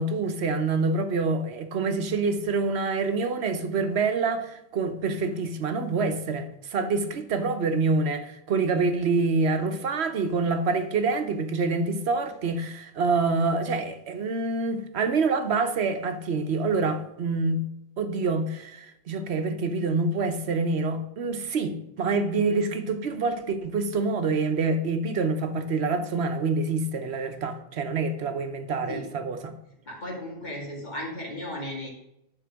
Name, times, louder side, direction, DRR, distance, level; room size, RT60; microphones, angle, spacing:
voice 1, 0.0-17.6 18.0-29.5, right 3 dB, 75° right, 1.1 m, -26 dB
voice 2, 29.9-31.9, left 1 dB, 45° left, 2.4 m, -35 dB
10.5 x 3.7 x 6.2 m
omnidirectional pair, 1.1 m